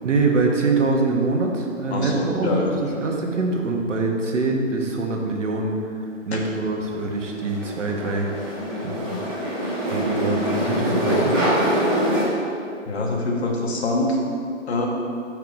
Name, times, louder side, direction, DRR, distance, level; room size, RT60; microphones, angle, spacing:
voice 1, 0.0-6.0 6.3-8.3 8.8-9.1 9.9-11.6, right 3 dB, 70° right, 1 dB, 1.2 m, -24 dB
voice 2, 1.9-2.8 10.7-10.8 12.9-14.2 14.7-14.9, left 2 dB, 55° left, -1 dB, 1.2 m, -24 dB
sound 1, 6.8-12.2, equal, 15° right, 1.1 m, -24 dB
5.7 x 4.8 x 4.7 m, 2.4 s
hypercardioid pair, 175°, 38 cm